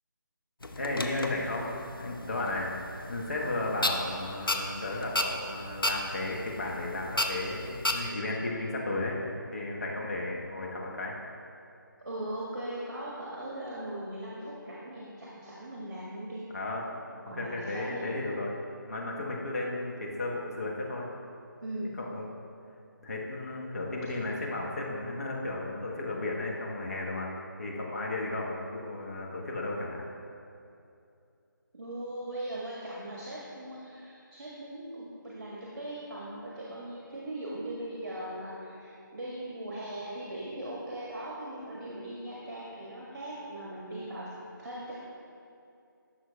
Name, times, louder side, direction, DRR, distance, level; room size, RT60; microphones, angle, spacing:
sound 1, 0.6-8.1, left 2 dB, 85° left, 0.7 m, -34 dB
voice 1, 0.8-1.7 2.0-2.7 3.1-9.2 9.5-11.1 16.5-16.8 17.3-18.5 18.9-21.1 22.0-22.3 23.0-27.3 27.6-30.0, left 2 dB, 45° left, -3 dB, 1.2 m, -34 dB
voice 2, 12.0-16.5 17.1-18.1 21.6-22.0 31.7-44.9, right 1 dB, 55° right, -5 dB, 1.5 m, -39 dB
12.5 x 6.4 x 2.3 m, 2.6 s
figure-of-eight pair, 160°, 11 cm